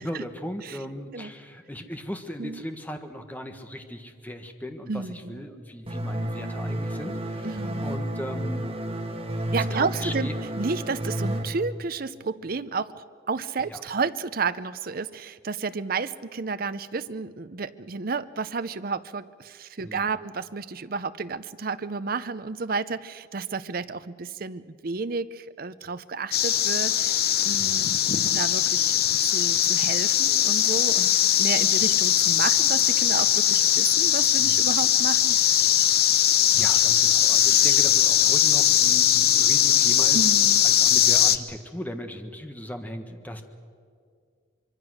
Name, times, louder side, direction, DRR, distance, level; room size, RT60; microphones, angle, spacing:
voice 1, 0.0-8.7 9.6-10.3 13.6-13.8 19.8-20.1 27.6-27.8 34.4-34.6 36.5-40.3 40.6-43.4, equal, 10° left, 6 dB, 1.4 m, -37 dB
voice 2, 4.9-5.4 7.4-7.9 9.5-10.3 10.6-35.4 40.1-40.6, right 4 dB, 50° right, 13 dB, 0.6 m, -31 dB
sound 1, 5.9-11.4, right 1 dB, 30° right, 2.0 m, -31 dB
sound 2, 26.3-41.4, left 10 dB, 55° left, 0.8 m, -20 dB
25.0 x 23.0 x 6.4 m, 2.1 s
head